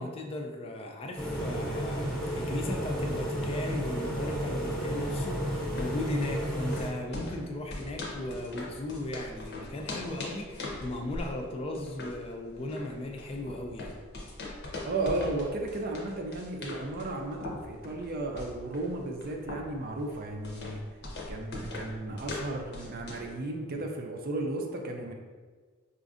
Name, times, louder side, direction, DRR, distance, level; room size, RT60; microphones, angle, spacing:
voice 1, 0.0-14.0, left 2 dB, 30° left, 2 dB, 0.3 m, -37 dB
sound 1, 1.2-6.9, equal, 5° left, 0.8 m, -32 dB
sound 2, 5.5-23.3, left 2 dB, 55° left, 0.7 m, -41 dB
voice 2, 14.8-20.8 21.3-25.2, right 2 dB, 50° right, 3 dB, 0.4 m, -34 dB
4.9 x 2.5 x 2.4 m, 1.5 s
head